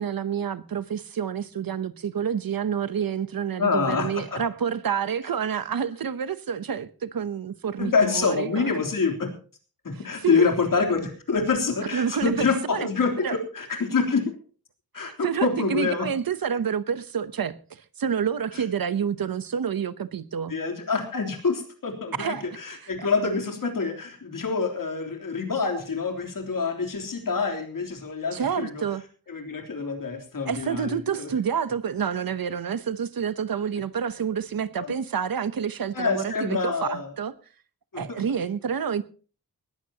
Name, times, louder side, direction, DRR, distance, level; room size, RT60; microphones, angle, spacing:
voice 1, 0.0-8.7 10.2-10.5 11.9-12.9 13.2-13.4 15.0-20.5 22.2-22.4 28.3-29.0 30.5-37.3 38.0-39.0, right 7 dB, 75° right, 1.0 m, -28 dB
voice 2, 3.6-4.4 7.8-9.3 9.8-14.2 14.9-16.1 18.5-18.6 20.5-28.8 29.3-31.3 34.8-34.9 35.9-37.1 37.9-38.2, left 4 dB, 65° left, 3.5 m, -26 dB
19.5 x 15.0 x 2.9 m
wide cardioid pair, 150°, 35 cm